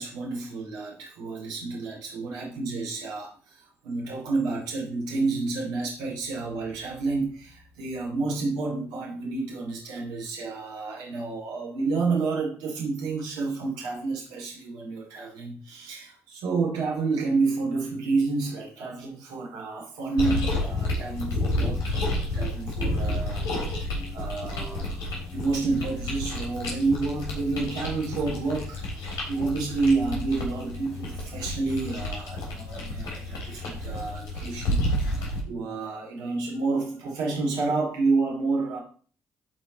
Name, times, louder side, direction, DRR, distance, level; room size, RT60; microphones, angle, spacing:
voice 1, 0.0-38.8, right 3 dB, 75° right, -2 dB, 2.7 m, -29 dB
sound 1, 20.2-35.4, left 1 dB, 75° left, 3.5 m, -30 dB
13.0 x 4.6 x 4.1 m, 0.42 s
hypercardioid pair, 45°, 7 cm